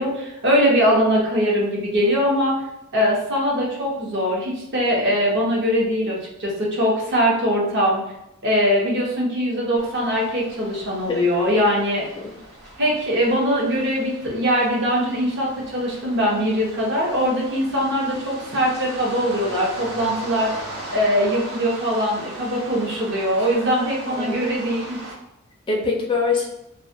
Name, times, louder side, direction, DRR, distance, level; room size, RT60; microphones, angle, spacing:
voice 1, 0.0-2.6 2.9-8.0 8.4-12.0 12.8-25.0, equal, 55° right, -3 dB, 0.7 m, -21 dB
sound 1, 9.8-25.1, right 1 dB, 85° right, 0.9 m, -39 dB
voice 2, 11.9-12.3 24.1-24.4 25.7-26.4, left 4 dB, 20° left, -2 dB, 0.3 m, -24 dB
2.2 x 2.1 x 2.6 m, 0.87 s
head